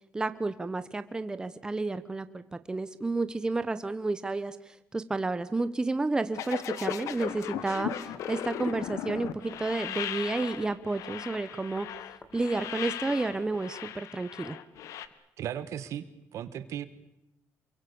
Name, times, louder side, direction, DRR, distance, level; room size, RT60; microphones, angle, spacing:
voice 1, 0.1-11.9 12.3-14.6, right 3 dB, 15° right, 12 dB, 1.0 m, -31 dB
sound 1, 6.3-15.1, left 10 dB, 80° left, 1.4 m, -37 dB
sound 2, 7.1-13.7, left 2 dB, 25° left, 3.1 m, -55 dB
voice 2, 15.4-16.8, right 10 dB, 70° right, 13 dB, 1.6 m, -36 dB
28.0 x 23.5 x 7.1 m, 0.87 s
cardioid pair, 135°, 5 cm